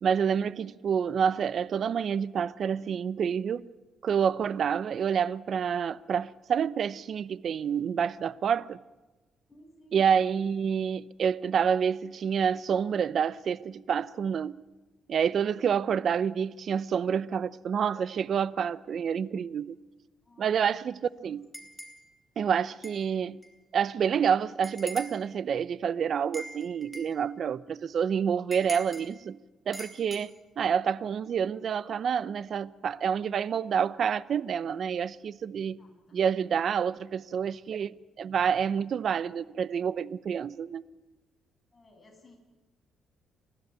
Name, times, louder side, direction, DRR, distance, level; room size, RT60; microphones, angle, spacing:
voice 1, 0.0-3.7 4.0-8.8 9.9-14.6 15.1-19.8 20.4-21.5 22.4-23.4 23.7-29.4 29.7-30.3 30.6-35.8 36.1-40.8, right 7 dB, 55° right, 0.7 m, -28 dB
voice 2, 9.5-10.2 20.2-20.8 21.2-21.6 35.8-36.2 41.7-42.4, left 1 dB, 25° left, 7.5 m, -56 dB
sound 1, 21.5-22.0 22.8-23.0 23.4-23.5 24.6-25.2 26.3-27.1 28.5-29.1 29.7-30.2, equal, 5° right, 3.6 m, -42 dB
29.5 x 12.5 x 9.3 m
cardioid pair, 90°, 0 cm